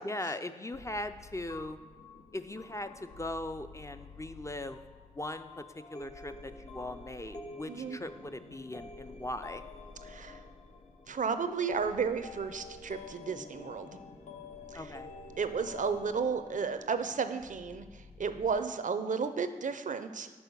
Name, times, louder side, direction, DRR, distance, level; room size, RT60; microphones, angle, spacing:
voice 1, 0.0-1.8 2.3-4.8 5.1-5.6 5.9-9.6 14.7-15.1, left 1 dB, 20° left, 9 dB, 0.4 m, -39 dB
sound 1, 0.7-18.5, left 3 dB, 90° left, 0.6 m, -54 dB
Piano, 1.5-7.7, left 6 dB, 75° left, 1.7 m, -57 dB
sound 2, 5.2-17.8, left 4 dB, 55° left, 0.8 m, -49 dB
voice 2, 7.7-8.0 10.0-10.4 11.1-13.9 14.7-14.9 15.4-20.3, right 5 dB, 60° right, 10 dB, 0.5 m, -33 dB
5.5 x 5.0 x 5.9 m, 1.4 s
cardioid pair, 40°, 15 cm